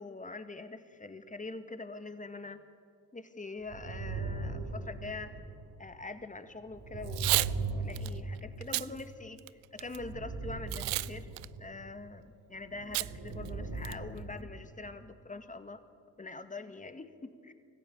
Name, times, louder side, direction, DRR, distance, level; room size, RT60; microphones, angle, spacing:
voice 1, 0.0-2.6 3.1-5.4 5.8-7.5 7.7-11.3 11.6-15.8 16.2-17.5, left 3 dB, 15° left, 9 dB, 1.9 m, -44 dB
sound 1, 3.7-5.9 6.6-9.2 9.8-12.0 12.5-14.6, right 3 dB, 45° right, 5.8 m, -39 dB
Packing tape duct tape / Tearing, 7.0-7.5 8.0-8.1 8.6-8.9 9.4-10.0 10.7-11.1 11.4-11.5 12.9-13.1 13.5-13.6 13.8-14.2, right 25 dB, 70° right, 0.6 m, -30 dB
24.5 x 14.5 x 8.7 m, 2.3 s
hypercardioid pair, 60°, 49 cm